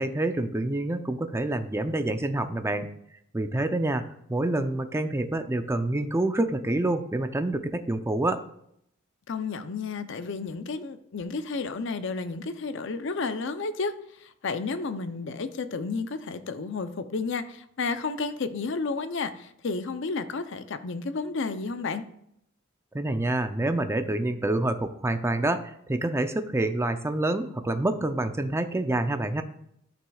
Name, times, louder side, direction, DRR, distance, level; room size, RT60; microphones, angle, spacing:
voice 1, 0.0-2.9 3.3-4.0 4.3-8.4 22.9-29.4, right 2 dB, 15° right, 8 dB, 0.5 m, -27 dB
voice 2, 9.3-13.9 14.2-22.0, left 4 dB, 65° left, 10 dB, 0.6 m, -32 dB
13.0 x 6.0 x 2.3 m, 0.74 s
head